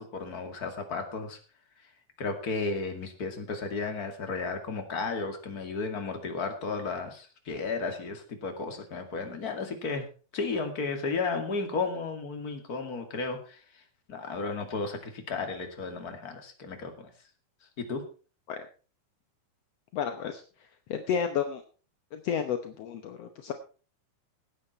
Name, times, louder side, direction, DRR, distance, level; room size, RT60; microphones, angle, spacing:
voice 1, 0.0-1.4 2.2-10.1 10.3-13.8 14.1-17.1 17.8-18.0, left 4 dB, 30° left, 5 dB, 2.3 m, -33 dB
voice 2, 19.9-20.4 20.9-21.6 22.1-23.5, left 7 dB, 70° left, 7 dB, 1.5 m, -31 dB
17.5 x 9.4 x 4.4 m, 0.36 s
omnidirectional pair, 4.1 m